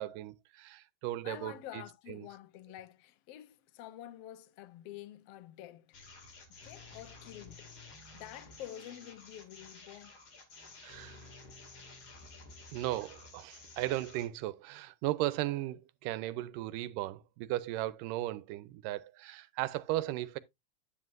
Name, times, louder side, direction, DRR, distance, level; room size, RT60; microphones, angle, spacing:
voice 1, 0.0-2.3 10.8-11.2 12.7-20.4, right 15 dB, 90° right, 2.3 m, -36 dB
voice 2, 1.2-6.0 6.5-7.7 8.1-10.2, left 12 dB, 90° left, 1.3 m, -48 dB
sound 1, 5.9-14.3, left 3 dB, 40° left, 2.7 m, -52 dB
10.0 x 7.6 x 2.5 m
omnidirectional pair, 3.7 m